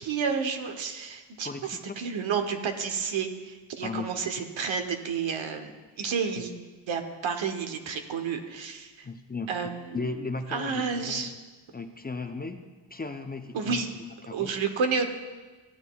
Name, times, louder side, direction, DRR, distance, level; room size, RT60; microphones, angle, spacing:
voice 1, 0.0-6.5 6.9-9.1 9.5-10.0 10.5-11.3 13.5-13.9 14.3-15.0, right 5 dB, 75° right, 6 dB, 1.0 m, -30 dB
voice 2, 1.4-1.9 3.8-4.3 6.0-6.1 6.4-6.5 9.0-9.5 9.9-11.3 11.7-12.6 12.9-13.8 14.3-14.6, left 3 dB, 20° left, 6 dB, 0.5 m, -36 dB
14.0 x 8.0 x 2.3 m, 1.3 s
cardioid pair, 65°, 47 cm